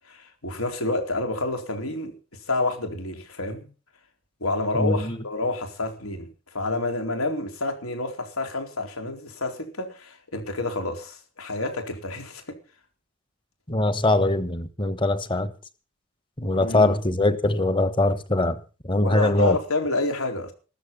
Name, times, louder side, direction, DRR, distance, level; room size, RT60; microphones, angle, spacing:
voice 1, 0.1-2.1 2.5-3.7 4.4-6.3 6.5-12.6 16.5-17.0 19.0-20.5, left 2 dB, 90° left, 4.1 m, -28 dB
voice 2, 4.7-5.2 13.7-15.5 16.4-19.6, left 2 dB, 25° left, 1.1 m, -22 dB
14.5 x 13.5 x 5.6 m
head